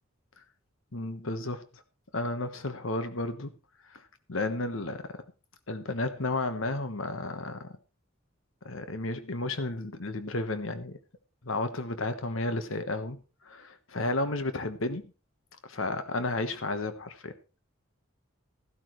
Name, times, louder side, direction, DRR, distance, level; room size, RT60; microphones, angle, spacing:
voice 1, 0.9-1.6 2.1-3.5 3.9-4.0 4.3-5.2 5.7-7.7 8.6-11.0 11.4-15.1 15.6-17.3, left 2 dB, 75° left, 1.2 m, -32 dB
14.5 x 12.0 x 3.2 m
head